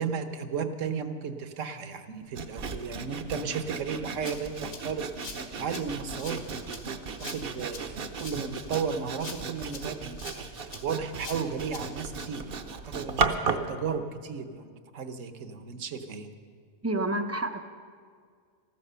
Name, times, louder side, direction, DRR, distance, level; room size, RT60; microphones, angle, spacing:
voice 1, 0.0-6.4 7.3-16.3, right 6 dB, 70° right, 9 dB, 1.3 m, -34 dB
Sawing, 2.3-13.7, right 4 dB, 50° right, 0.9 m, -35 dB
Rattle (instrument), 4.2-12.2, left 3 dB, 75° left, 2.2 m, -45 dB
voice 2, 16.8-17.6, right 2 dB, 20° right, 7 dB, 0.4 m, -29 dB
14.5 x 12.5 x 6.8 m, 2.1 s
omnidirectional pair, 1.4 m